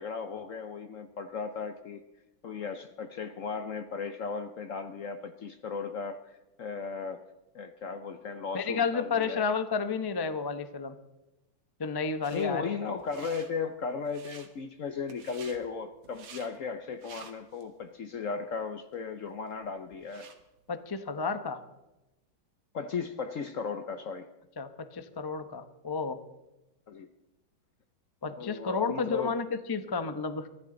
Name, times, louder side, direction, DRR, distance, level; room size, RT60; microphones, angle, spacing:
voice 1, 0.0-2.0 2.4-7.2 7.5-9.5 12.3-20.3 22.7-24.3 26.9-27.1 28.2-29.3, left 5 dB, 60° left, 9 dB, 0.9 m, -36 dB
voice 2, 8.5-10.9 11.8-12.7 20.7-21.6 24.6-26.2 28.2-30.5, left 5 dB, 30° left, 9 dB, 0.4 m, -31 dB
sound 1, 12.2-12.5 13.0-13.5 14.0-14.5 15.1-15.6 16.0-16.5 16.9-17.6 18.1-18.2 18.9-19.0 19.3-20.4, right 6 dB, 90° right, 2.3 m, -50 dB
23.5 x 14.5 x 3.9 m, 0.97 s
omnidirectional pair, 2.1 m